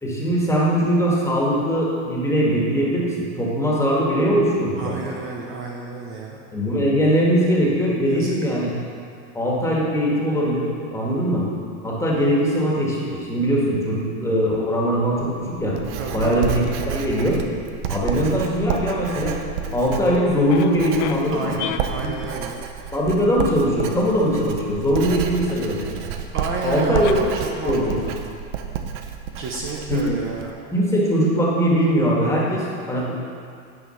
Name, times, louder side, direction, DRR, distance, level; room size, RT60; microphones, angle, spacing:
voice 1, 0.0-4.9 6.5-8.7 9.3-11.5 11.8-15.8 16.1-17.4 17.9-19.4 19.7-21.5 22.9-25.9 26.6-27.2 27.6-28.0 29.9-30.2 30.7-33.1, equal, 10° left, -5 dB, 1.9 m, -21 dB
voice 2, 4.8-6.4 8.0-8.3 16.0-16.5 21.3-22.6 26.3-28.1 29.4-30.5, right 4 dB, 35° right, -1 dB, 0.9 m, -31 dB
Writing, 15.1-30.5, right 8 dB, 85° right, 0.8 m, -30 dB
sound 1, 19.6-21.2 21.5-22.4 23.1-23.3 25.9-26.0 26.2-26.3 27.0-27.1 27.6-28.2, left 11 dB, 70° left, 0.6 m, -32 dB
9.8 x 5.2 x 5.8 m, 2.3 s
supercardioid pair, 135°, 35 cm